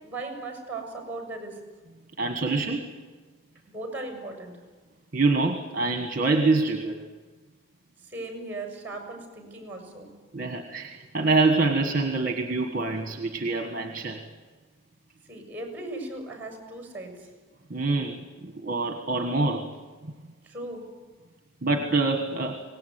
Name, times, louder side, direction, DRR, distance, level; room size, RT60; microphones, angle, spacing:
voice 1, 0.0-1.6 3.7-4.6 8.1-10.1 15.3-17.1 20.4-20.8, right 2 dB, 10° right, 4 dB, 6.3 m, -37 dB
voice 2, 2.2-2.9 5.1-7.0 10.3-14.2 17.7-19.7 21.6-22.6, right 3 dB, 40° right, 5 dB, 1.6 m, -25 dB
24.5 x 19.0 x 9.4 m, 1.4 s
head